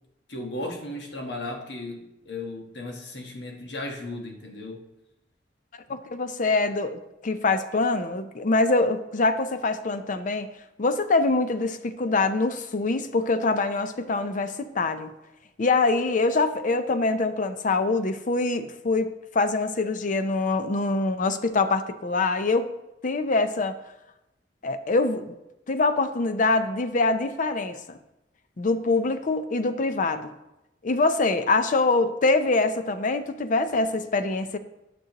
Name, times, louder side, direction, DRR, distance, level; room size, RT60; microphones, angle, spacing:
voice 1, 0.3-4.8 5.9-6.0, left 2 dB, 70° left, 2 dB, 1.3 m, -35 dB
voice 2, 5.9-10.5 10.8-15.1 15.6-22.7 23.0-23.7 24.6-25.3 25.7-28.0 28.6-30.3 30.8-34.6, left 3 dB, 45° left, 10 dB, 0.5 m, -24 dB
12.0 x 6.1 x 2.9 m, 0.92 s
head